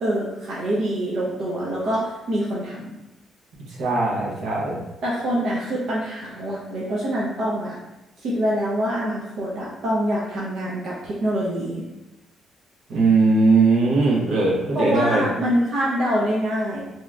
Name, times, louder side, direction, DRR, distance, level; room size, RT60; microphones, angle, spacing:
voice 1, 0.0-2.9 5.0-7.8 8.2-11.8 14.7-16.8, equal, 65° right, -6 dB, 0.6 m, -25 dB
voice 2, 3.7-4.8 12.9-15.3, right 3 dB, 85° right, -6 dB, 1.0 m, -19 dB
2.8 x 2.4 x 3.3 m, 1.0 s
cardioid pair, 90°, 0 cm